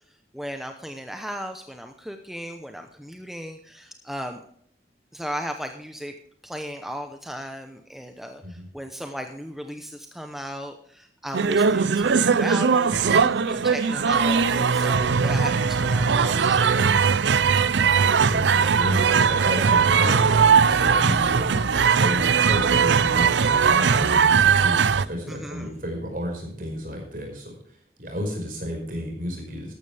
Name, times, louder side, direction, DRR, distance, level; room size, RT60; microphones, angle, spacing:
voice 1, 0.3-4.4 5.1-6.1 6.4-16.7 25.3-25.7, equal, ahead, 5 dB, 0.8 m, -36 dB
sound 1, 11.3-25.1, right 6 dB, 90° right, 0.5 m, -20 dB
voice 2, 18.0-21.5 21.8-27.5 28.0-29.7, equal, 50° right, 2 dB, 5.4 m, -32 dB
14.0 x 12.0 x 3.5 m, 0.63 s
head